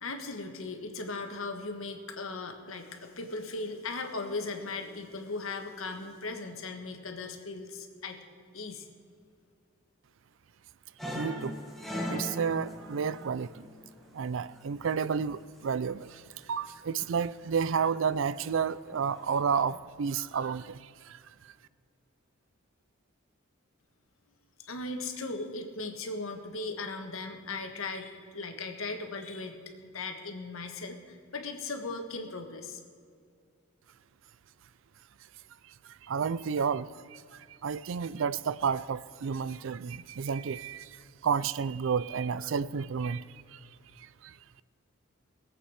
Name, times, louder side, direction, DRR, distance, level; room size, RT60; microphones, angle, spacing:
voice 1, 0.0-8.2 8.5-8.9 24.6-32.8, left 3 dB, 75° left, 5 dB, 1.5 m, -38 dB
sound 1, 11.0-14.4 14.7-15.3 16.0-16.4 17.0-17.6 18.0-18.3 18.7-19.8, equal, ahead, 1.5 m, -39 dB
voice 2, 11.1-11.6 12.1-13.7 14.1-21.5 35.8-43.6 44.0-44.4, right 6 dB, 60° right, 17 dB, 0.4 m, -31 dB
21.5 x 8.2 x 4.9 m, 2.3 s
head